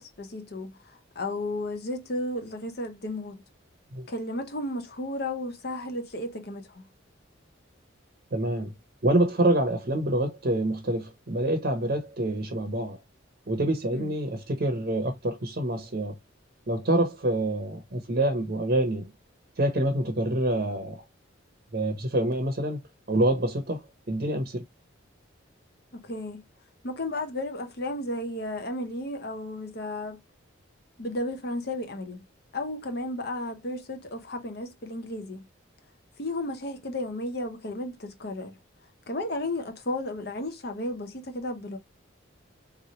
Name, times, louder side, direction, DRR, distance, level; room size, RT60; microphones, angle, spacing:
voice 1, 0.0-3.4 4.1-6.8 13.9-14.1 25.9-26.4 26.8-30.2 31.0-32.2 32.5-35.4 36.2-38.6 39.1-41.8, left 1 dB, 50° left, 0.8 m, -33 dB
voice 2, 8.3-8.7 9.0-13.0 13.5-16.2 16.7-19.1 19.6-21.0 21.7-22.8 23.1-23.8 24.1-24.6, right 1 dB, 50° right, 0.8 m, -26 dB
3.6 x 3.1 x 2.8 m
head